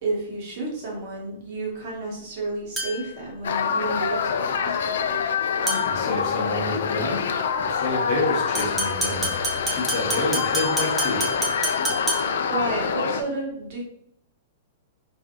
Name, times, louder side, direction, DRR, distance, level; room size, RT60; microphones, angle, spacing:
voice 1, 0.0-5.2 12.5-13.8, right 2 dB, 35° right, -3 dB, 1.2 m, -31 dB
sound 1, 2.8-3.2 5.7-6.1 8.5-12.5, right 1 dB, 5° right, 0.5 m, -29 dB
sound 2, 3.4-13.2, left 6 dB, 65° left, 0.4 m, -26 dB
voice 2, 5.6-7.3 7.6-9.4 9.6-11.3, left 2 dB, 30° left, -4 dB, 1.0 m, -29 dB
4.0 x 2.6 x 3.7 m, 0.72 s
supercardioid pair, 180°, 0 cm